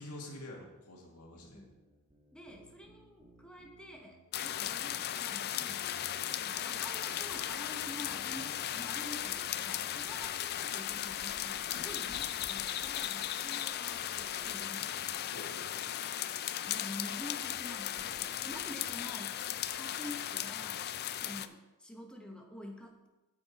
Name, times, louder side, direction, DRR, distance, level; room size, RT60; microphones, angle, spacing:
voice 1, 0.0-1.6 10.0-10.2 11.7-11.9 15.3-15.9, left 1 dB, 90° left, 0 dB, 2.0 m, -48 dB
sound 1, 1.7-7.7 8.1-8.3, right 2 dB, 25° right, 1.3 m, -60 dB
voice 2, 2.3-6.1 6.4-15.0 16.6-19.5 19.7-20.8 21.2-23.1, left 1 dB, 5° left, 1 dB, 1.0 m, -48 dB
sound 2, 4.3-21.5, left 11 dB, 45° left, 0.4 m, -37 dB
8.6 x 7.8 x 4.2 m, 1.0 s
head